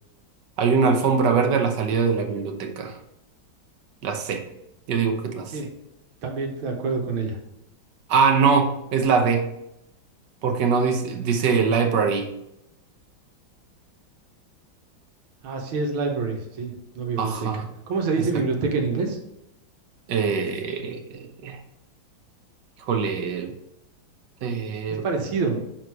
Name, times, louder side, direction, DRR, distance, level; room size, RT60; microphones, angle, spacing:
voice 1, 0.6-3.0 4.0-4.4 4.9-5.6 8.1-9.4 10.4-12.3 17.2-17.7 18.2-18.3 20.1-21.6 22.9-23.5 24.4-25.0, right 5 dB, 65° right, 4 dB, 1.4 m, -22 dB
voice 2, 6.2-7.4 15.4-19.2 24.9-25.6, right 4 dB, 85° right, 2 dB, 1.8 m, -27 dB
6.2 x 3.9 x 4.7 m, 0.84 s
omnidirectional pair, 2.2 m